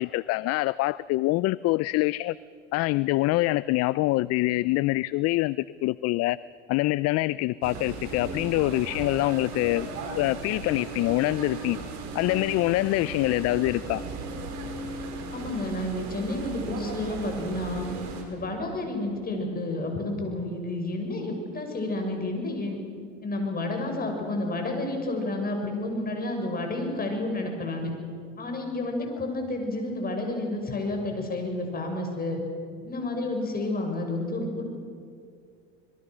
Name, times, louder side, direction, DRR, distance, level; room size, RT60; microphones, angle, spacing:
voice 1, 0.0-2.4 2.7-6.4 6.7-9.9 10.2-11.8 12.1-14.0, left 19 dB, 50° left, 20 dB, 0.5 m, -25 dB
sound 1, 7.6-18.2, right 3 dB, 55° right, 5.1 m, -36 dB
voice 2, 15.3-17.9 18.3-22.8 23.2-27.9 28.4-32.4 32.8-34.6, left 2 dB, 30° left, 3 dB, 6.3 m, -30 dB
27.0 x 22.0 x 6.3 m, 2.3 s
supercardioid pair, 90°, 33 cm